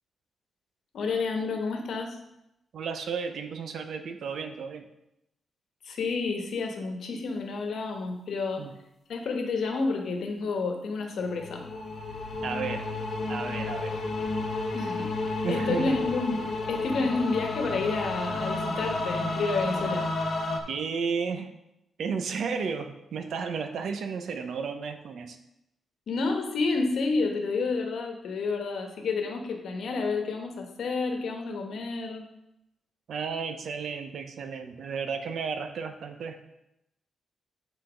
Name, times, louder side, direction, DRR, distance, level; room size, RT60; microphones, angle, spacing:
voice 1, 0.9-2.2 5.8-8.6 9.1-11.6 14.7-20.1 26.1-32.2, left 4 dB, 70° left, 3 dB, 1.2 m, -30 dB
voice 2, 2.7-4.9 8.6-8.7 12.4-12.9 13.3-14.0 15.4-16.1 20.7-21.5 22.0-25.4 33.1-36.4, right 5 dB, 65° right, 7 dB, 0.7 m, -33 dB
sound 1, 11.2-20.6, left 2 dB, 40° left, 0.9 m, -31 dB
8.2 x 4.0 x 5.0 m, 0.87 s
wide cardioid pair, 135°, 0 cm